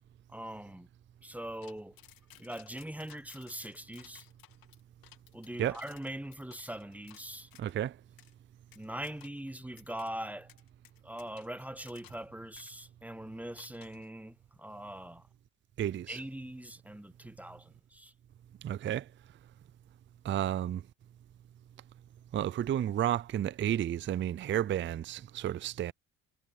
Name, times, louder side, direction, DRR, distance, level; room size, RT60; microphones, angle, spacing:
voice 1, 0.3-0.9 1.2-2.0 2.4-4.3 5.3-7.5 8.7-10.5 11.0-15.3 16.1-18.1, right 1 dB, 5° right, 1.3 m, -42 dB
sound 1, 1.6-7.8 8.2-8.3 8.7-9.5 9.8-10.1 10.5-12.3 12.6-12.7 13.6-14.1, left 12 dB, 70° left, 2.7 m, -58 dB
voice 2, 7.6-8.0 15.8-16.2 18.6-19.1 20.2-20.8 22.3-25.9, right 11 dB, 35° right, 0.4 m, -31 dB
supercardioid pair, 75°, 36 cm